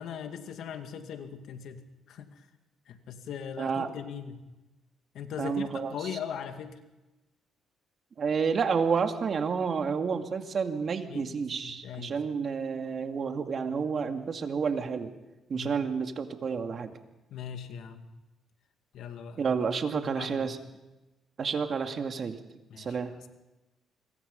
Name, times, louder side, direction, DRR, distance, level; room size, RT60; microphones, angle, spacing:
voice 1, 0.0-1.8 2.1-2.5 2.9-4.4 5.1-6.8 11.1-11.3 11.6-12.2 15.5-15.7 17.3-18.1 18.9-19.6 19.9-20.5 22.7-23.0, left 8 dB, 75° left, 7 dB, 2.2 m, -40 dB
voice 2, 3.6-3.9 5.4-5.9 8.2-15.1 15.5-17.0 19.4-20.6 21.4-22.4 22.8-23.1, right 5 dB, 50° right, 6 dB, 2.4 m, -30 dB
26.0 x 22.5 x 5.5 m, 1.0 s
cardioid pair, 90°, 0 cm